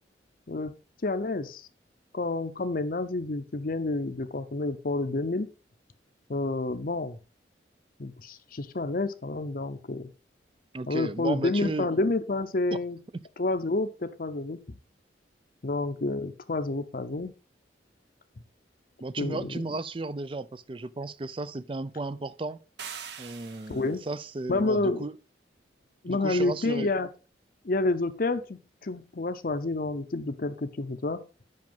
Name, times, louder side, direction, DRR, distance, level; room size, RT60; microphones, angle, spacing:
voice 1, 1.0-1.6 2.1-5.5 6.3-7.2 8.0-10.1 10.9-13.0 13.4-14.8 15.6-17.3 19.2-19.6 23.7-24.0 24.5-25.1 26.0-27.1 27.6-31.2, left 2 dB, 50° left, 0.7 m, -29 dB
voice 2, 10.7-11.9 12.7-12.8 19.0-22.6 23.2-25.1 26.1-26.9, right 2 dB, 30° right, 0.4 m, -34 dB
sound 1, 22.8-24.1, right 7 dB, 65° right, 1.0 m, -42 dB
7.7 x 5.9 x 5.3 m
head